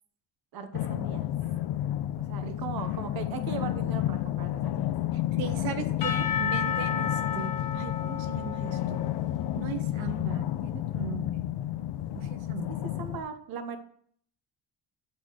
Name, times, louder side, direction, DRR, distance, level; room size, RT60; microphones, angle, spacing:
voice 1, 0.5-1.3 2.2-4.8 12.7-13.8, right 6 dB, 50° right, 7 dB, 0.8 m, -39 dB
sound 1, 0.7-13.2, left 13 dB, 65° left, 0.5 m, -31 dB
voice 2, 5.1-9.0 9.5-11.5 12.1-12.7, right 9 dB, 90° right, 8 dB, 0.7 m, -39 dB
Percussion / Church bell, 6.0-10.0, left 7 dB, 45° left, 1.1 m, -33 dB
8.1 x 4.2 x 2.9 m, 0.62 s
cardioid pair, 105°, 45 cm